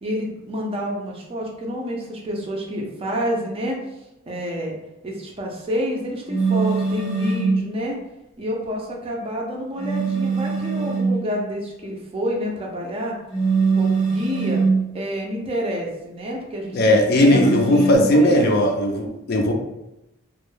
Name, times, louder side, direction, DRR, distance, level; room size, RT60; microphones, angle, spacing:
voice 1, 0.0-3.8 4.3-4.8 5.0-8.0 8.4-13.2 13.7-14.6 14.9-18.5, equal, 25° right, -1 dB, 0.4 m, -28 dB
sound 1, 6.3-7.6 9.8-11.2 13.3-14.8 17.3-18.0, right 4 dB, ahead, 0.7 m, -22 dB
voice 2, 16.7-19.5, left 1 dB, 50° left, 2 dB, 0.4 m, -17 dB
2.2 x 2.0 x 3.0 m, 0.92 s
head